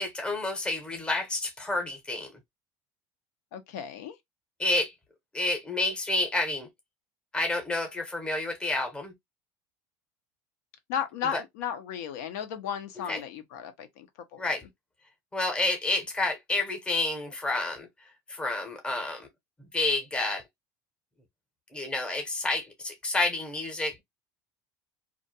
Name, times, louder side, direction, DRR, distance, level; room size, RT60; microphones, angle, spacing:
voice 1, 0.0-2.3 4.6-4.9 5.3-6.7 7.3-9.1 11.3-11.4 13.1-13.2 14.4-14.6 15.3-19.3 19.7-20.4 21.7-24.0, left 2 dB, 10° left, 0.7 m, -29 dB
voice 2, 3.5-4.2 10.9-14.1 14.3-14.5, left 8 dB, 85° left, 0.7 m, -34 dB
2.5 x 2.2 x 2.6 m
cardioid pair, 160°, 9 cm